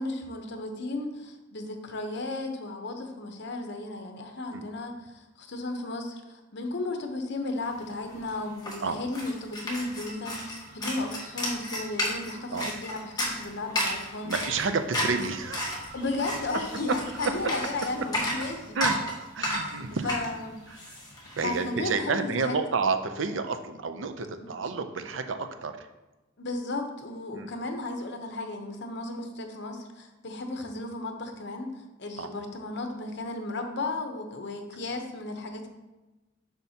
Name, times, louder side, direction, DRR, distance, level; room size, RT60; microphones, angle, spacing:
voice 1, 0.0-14.3 15.9-18.8 20.0-20.6 21.4-22.6 24.4-24.5 26.4-35.7, left 2 dB, 60° left, 5 dB, 0.9 m, -34 dB
sound 1, 7.8-7.9 8.1-21.9, left 1 dB, 20° left, 1.3 m, -33 dB
voice 2, 14.2-15.8 16.9-17.0 17.2-17.5 18.7-20.1 20.9-21.0 21.4-25.9 27.3-27.5 32.2-32.3, right 4 dB, 75° right, 8 dB, 0.6 m, -30 dB
7.1 x 5.6 x 2.9 m, 1.1 s
head